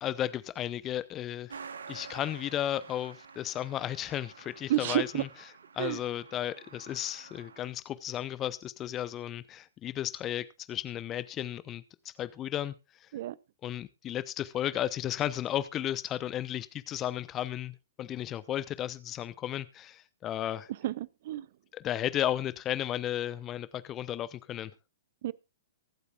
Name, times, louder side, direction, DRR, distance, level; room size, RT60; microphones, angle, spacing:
voice 1, 0.0-5.3 5.7-12.7 13.0-13.1 13.6-20.7 21.7-24.7, left 12 dB, 25° left, 0.7 m, -34 dB
Truck, 1.5-7.7, right 5 dB, 70° right, 1.2 m, -49 dB
voice 2, 4.7-5.2 5.8-6.0 13.1-13.3 20.8-21.5 25.2-25.3, right 13 dB, 50° right, 0.6 m, -30 dB
23.5 x 8.2 x 2.4 m
figure-of-eight pair, 110°, 0 cm